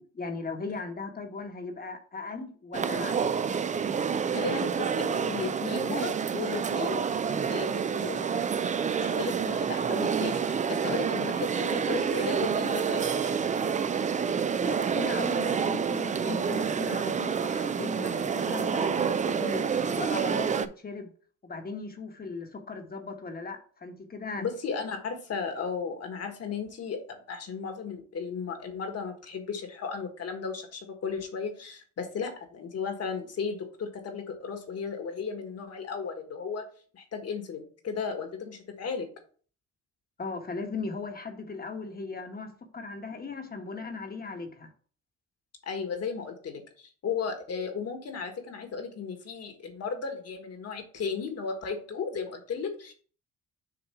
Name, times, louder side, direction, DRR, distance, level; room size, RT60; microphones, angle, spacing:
voice 1, 0.0-3.2 14.6-21.1 21.4-24.4 40.2-44.7, left 3 dB, 30° left, 5 dB, 1.2 m, -38 dB
sound 1, 2.7-20.7, right 6 dB, 25° right, 0.4 m, -28 dB
voice 2, 4.3-7.0 7.5-8.3 9.0-13.3 24.4-36.6 36.9-39.1 45.6-52.9, left 5 dB, 55° left, 5 dB, 1.6 m, -35 dB
6.8 x 2.7 x 5.6 m, 0.43 s
cardioid pair, 90°, 30 cm